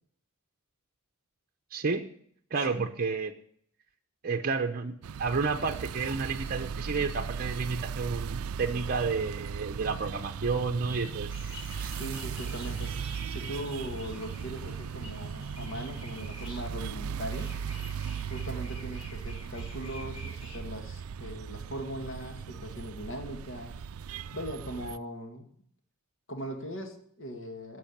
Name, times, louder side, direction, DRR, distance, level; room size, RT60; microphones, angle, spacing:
voice 1, 1.7-2.1 2.5-3.3 4.2-11.3 11.8-12.0, right 4 dB, 45° right, 5 dB, 0.7 m, -31 dB
sound 1, 5.0-25.0, right 7 dB, 70° right, 0.4 m, -37 dB
sound 2, 11.3-16.7 17.3-20.6, left 2 dB, 25° left, 7.1 m, -49 dB
voice 2, 11.9-12.9 13.2-17.6 18.3-23.8 24.3-25.5 26.3-27.8, equal, 60° left, 4 dB, 2.0 m, -40 dB
12.5 x 6.2 x 8.5 m, 0.65 s
head